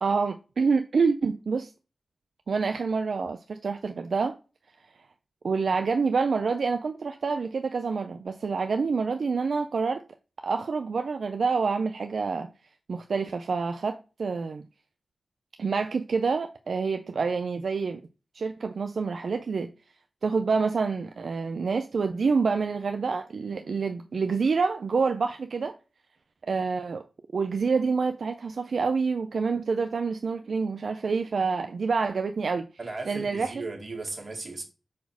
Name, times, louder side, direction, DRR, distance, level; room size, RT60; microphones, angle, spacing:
voice 1, 0.0-1.7 2.5-4.4 5.4-10.0 10.4-12.5 12.9-14.7 15.6-18.0 18.3-19.7 20.2-25.8 26.5-27.0 27.3-32.7 33.1-33.5, right 4 dB, 65° right, 0.4 m, -27 dB
voice 2, 32.8-34.6, right 3 dB, 40° right, 2.0 m, -36 dB
5.0 x 4.3 x 5.9 m
wide cardioid pair, 115°, 0 cm